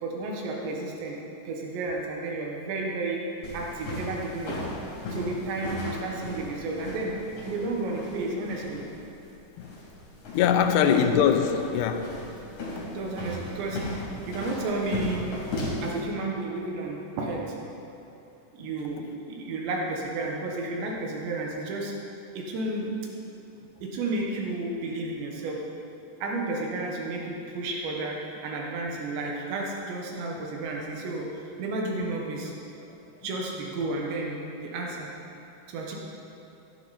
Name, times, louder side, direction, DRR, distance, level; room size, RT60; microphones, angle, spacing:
voice 1, 0.0-1.2 1.5-3.2 3.5-4.6 5.1-7.2 7.4-8.8 10.5-11.0 12.8-13.8 14.3-15.3 15.8-17.6 18.5-21.9 22.4-22.9 23.8-25.6 26.2-31.3 31.6-32.5 32.8-32.9 33.2-35.1 35.7-36.0, right 2 dB, 90° right, -1 dB, 3.7 m, -32 dB
sound 1, 3.4-15.9, left 2 dB, 55° left, 4.9 m, -37 dB
voice 2, 10.3-12.1, left 8 dB, 80° left, 6 dB, 2.7 m, -22 dB
16.5 x 11.0 x 4.3 m, 2.8 s
omnidirectional pair, 4.9 m